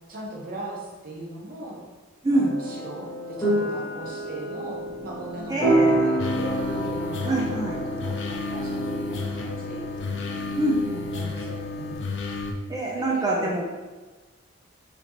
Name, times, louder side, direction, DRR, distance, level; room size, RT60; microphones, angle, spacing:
voice 1, 0.1-1.8 2.3-10.1 10.9-12.1 12.8-13.6, right 1 dB, 45° right, -2 dB, 0.9 m, -39 dB
sound 1, 2.3-11.9, right 1 dB, 10° left, 1.1 m, -28 dB
voice 2, 5.5-6.1 7.2-7.8 10.6-11.0 12.7-13.7, right 2 dB, 20° right, -2 dB, 0.4 m, -25 dB
sound 2, 6.2-12.5, left 3 dB, 60° left, 0.4 m, -31 dB
4.1 x 2.8 x 2.9 m, 1.3 s
head